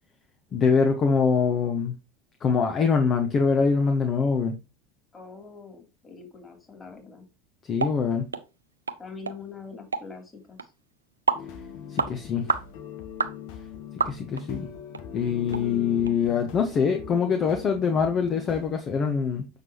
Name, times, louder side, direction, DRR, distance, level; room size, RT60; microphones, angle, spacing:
voice 1, 0.5-1.9 2.4-4.5 7.6-8.3 11.9-12.5 14.0-14.7 15.1-19.5, left 5 dB, 35° left, 1.2 m, -24 dB
voice 2, 5.1-7.2 9.0-10.7 15.5-16.2, left 5 dB, 20° left, 3.0 m, -43 dB
sound 1, 7.8-8.0 8.3-8.4 8.9-9.0 9.3-9.4 9.9-10.1 10.6-10.7 11.3-11.5 12.0-12.1 12.5-12.7 13.2-13.4 14.0-14.4 14.9-15.0 15.5-15.6 16.1-16.2, right 4 dB, 85° right, 0.5 m, -27 dB
sound 2, 11.3-18.8, left 8 dB, 60° left, 1.2 m, -42 dB
7.4 x 6.2 x 3.0 m
figure-of-eight pair, 75°, 0 cm